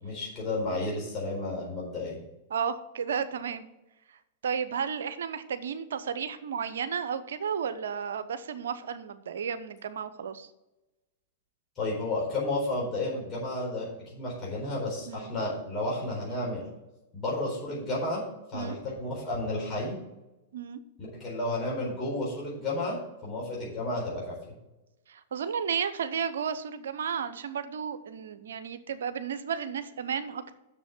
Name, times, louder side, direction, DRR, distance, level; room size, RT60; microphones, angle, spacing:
voice 1, 0.0-2.2 11.8-16.6 17.1-18.2 18.5-20.0 21.1-22.9 23.2-24.3, left 2 dB, 25° left, -5 dB, 4.2 m, -32 dB
voice 2, 2.5-3.7 4.4-10.5 15.1-15.3 18.5-18.8 20.5-20.8 25.1-30.5, right 7 dB, 70° right, 12 dB, 0.8 m, -33 dB
7.0 x 6.8 x 7.2 m, 0.98 s
figure-of-eight pair, 100°, 0 cm